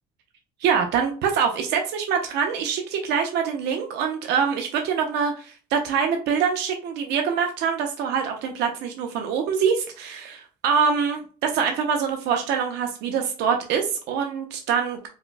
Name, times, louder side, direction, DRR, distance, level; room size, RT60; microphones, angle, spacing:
voice 1, 0.6-15.1, right 6 dB, 85° right, 4 dB, 0.6 m, -24 dB
5.0 x 2.2 x 2.5 m, 0.39 s
cardioid pair, 110°, 17 cm